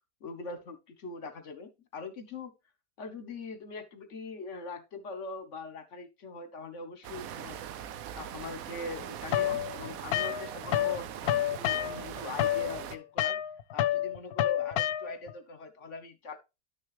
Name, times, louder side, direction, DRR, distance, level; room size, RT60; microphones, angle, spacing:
voice 1, 0.2-2.5 3.0-7.6 8.1-13.4 13.7-16.4, left 3 dB, 55° left, 10 dB, 1.4 m, -42 dB
sound 1, 7.0-13.0, right 10 dB, 70° right, 1.1 m, -41 dB
sound 2, 9.3-11.0 11.2-15.3, left 12 dB, 80° left, 1.1 m, -29 dB
10.5 x 6.3 x 3.2 m, 0.26 s
omnidirectional pair, 1.6 m